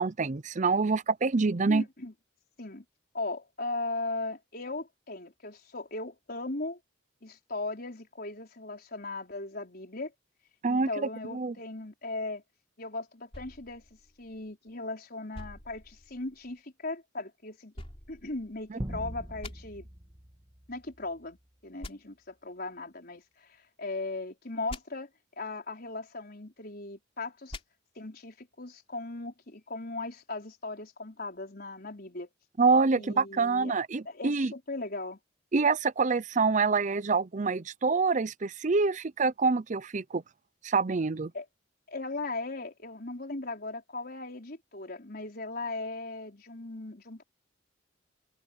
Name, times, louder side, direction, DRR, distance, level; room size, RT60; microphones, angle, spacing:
voice 1, 0.0-1.8 10.6-11.5 18.7-18.8 32.6-34.5 35.5-40.2 40.6-41.3, right 4 dB, 40° right, 0.6 m, -26 dB
voice 2, 1.7-2.1 2.6-2.8 3.1-6.8 7.2-10.1 10.7-12.4 12.8-13.8 14.2-17.7 18.1-19.9 20.7-21.4 21.6-25.1 25.4-27.6 27.9-32.3 33.0-33.7 34.0-35.2 41.3-41.4 41.9-47.2, left 2 dB, 50° left, 4.8 m, -38 dB
sound 1, 13.3-14.7 15.3-16.6 17.7-18.9 19.4-19.5 21.8-21.9 24.7-24.8 27.5-27.6, left 1 dB, 30° left, 3.3 m, -45 dB
sound 2, 18.8-21.4, equal, 20° right, 1.7 m, -41 dB
head